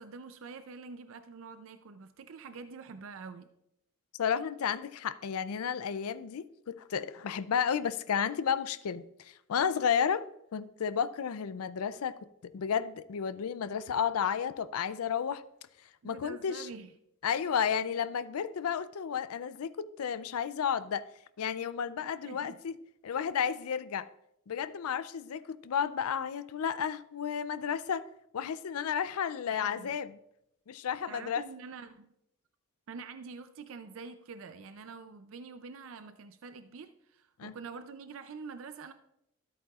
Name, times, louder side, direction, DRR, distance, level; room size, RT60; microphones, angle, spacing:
voice 1, 0.0-3.5 16.0-17.0 22.2-22.6 29.5-30.0 31.1-32.1 32.9-38.9, right 4 dB, 70° right, 0.4 m, -46 dB
voice 2, 4.2-10.2 10.5-12.2 12.5-15.4 16.0-16.7 17.2-21.0 21.4-22.7 23.0-24.1 24.5-28.1 28.3-30.2 30.7-31.4 37.4-37.5, left 7 dB, 85° left, 0.4 m, -32 dB
13.0 x 8.3 x 2.4 m
head